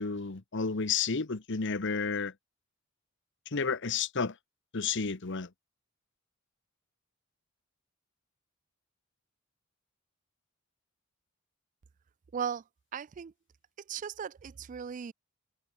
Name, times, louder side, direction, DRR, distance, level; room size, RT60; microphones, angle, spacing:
voice 1, 0.0-2.3 3.5-4.4 4.7-5.5, left 5 dB, 60° left, 1.1 m, -31 dB
voice 2, 12.3-12.6 12.9-13.3 13.9-15.1, right 7 dB, 40° right, 0.3 m, -37 dB
head